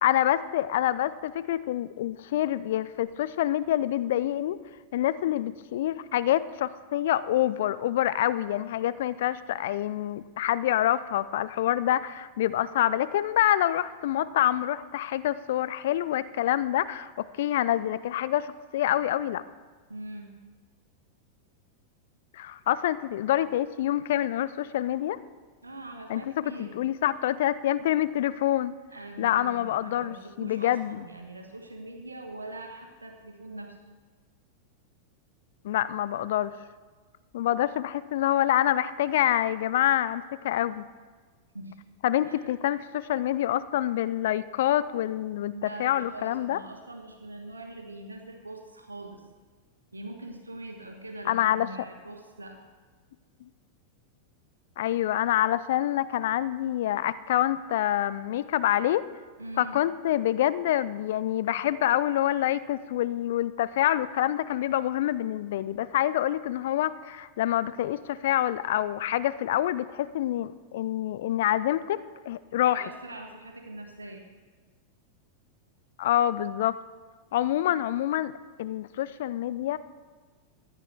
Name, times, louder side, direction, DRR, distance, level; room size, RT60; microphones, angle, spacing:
voice 1, 0.0-4.6 4.9-19.4 22.3-25.2 26.1-26.2 26.6-28.8 29.2-31.0 35.6-36.5 37.3-40.9 42.0-46.6 51.3-51.7 54.8-59.0 59.6-72.0 72.3-72.9 76.0-76.8 77.3-78.3 78.6-79.8, left 12 dB, 55° left, 16 dB, 0.3 m, -26 dB
voice 2, 19.9-20.4 25.6-26.8 28.9-33.8 41.5-41.8 42.2-42.5 45.5-49.2 49.9-52.7 59.4-59.8 72.5-74.2, right 1 dB, 80° right, 4 dB, 1.4 m, -42 dB
14.5 x 9.8 x 3.5 m, 1.4 s
figure-of-eight pair, 90°, 0 cm